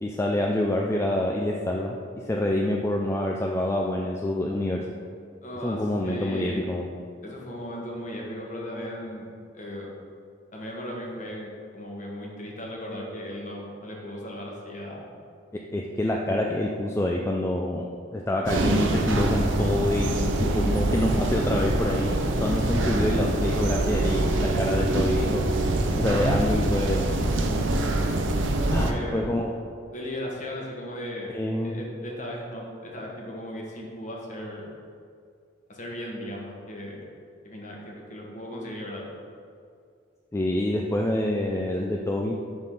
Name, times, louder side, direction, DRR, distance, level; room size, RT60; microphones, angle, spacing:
voice 1, 0.0-4.8 5.6-6.9 15.5-17.9 18.1-25.4 25.9-27.1 28.7-29.5 31.3-31.9 40.3-42.3, left 1 dB, 15° left, -1 dB, 0.3 m, -27 dB
voice 2, 5.4-6.6 7.2-9.3 9.5-9.9 10.5-15.0 28.7-29.3 29.9-31.3 31.6-34.7 35.7-37.0 37.4-39.1, equal, 40° left, -2 dB, 1.2 m, -36 dB
sound 1, 18.5-28.9, right 2 dB, 75° right, 0.6 m, -24 dB
11.0 x 3.7 x 3.8 m, 2.3 s
head